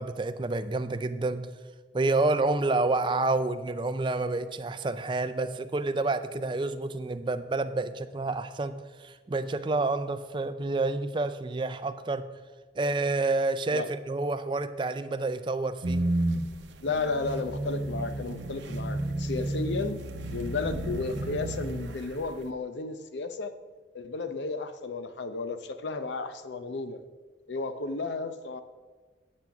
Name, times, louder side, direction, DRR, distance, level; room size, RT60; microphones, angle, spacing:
voice 1, 0.0-1.5 1.9-12.3 12.8-16.1, right 2 dB, 25° right, 11 dB, 0.4 m, -29 dB
sound 1, 15.8-22.3, right 1 dB, 85° right, 0.8 m, -32 dB
voice 2, 16.8-20.0 20.3-23.5 23.9-27.0 27.5-28.6, left 3 dB, 80° left, 10 dB, 0.6 m, -33 dB
8.6 x 6.0 x 5.9 m, 1.3 s
head